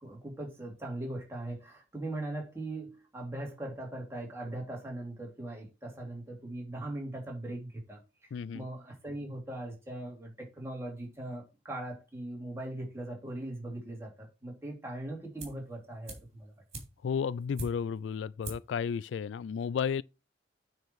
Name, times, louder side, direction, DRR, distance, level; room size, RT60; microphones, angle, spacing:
voice 1, 0.0-8.0 8.5-16.5, right 1 dB, 15° right, 2.9 m, -40 dB
voice 2, 8.3-8.7 17.0-20.0, left 6 dB, 90° left, 0.3 m, -33 dB
sound 1, 15.4-15.7 16.0-18.0 18.4-18.8 19.1-19.2, right 2 dB, 35° right, 3.3 m, -44 dB
9.4 x 4.5 x 4.7 m
head